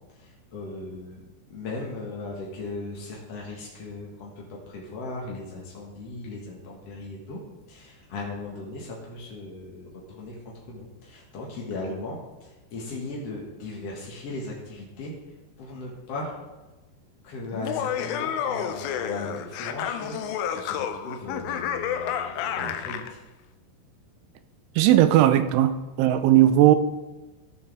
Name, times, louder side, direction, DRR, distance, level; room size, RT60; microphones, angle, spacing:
voice 1, 0.1-7.4 7.7-15.1 15.6-16.3 17.2-20.2 20.5-23.2, left 2 dB, 60° left, -4 dB, 1.6 m, -37 dB
Laughter, 17.5-23.1, left 9 dB, 90° left, 3.2 m, -30 dB
voice 2, 24.8-26.8, right 13 dB, 90° right, 10 dB, 3.0 m, -18 dB
17.5 x 7.2 x 3.5 m, 1.1 s
omnidirectional pair, 5.5 m